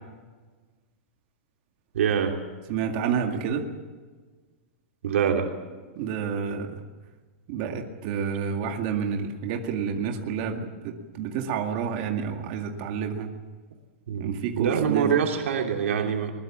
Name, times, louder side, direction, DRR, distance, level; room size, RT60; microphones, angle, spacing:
voice 1, 1.9-2.3 5.0-5.5 14.1-16.3, right 7 dB, 80° right, 2 dB, 3.4 m, -25 dB
voice 2, 2.7-3.6 6.0-6.7 7.5-10.7 11.1-13.3 14.2-15.2, right 7 dB, 35° right, 3 dB, 2.1 m, -29 dB
22.0 x 21.0 x 7.4 m, 1.4 s
supercardioid pair, 175°, 7 cm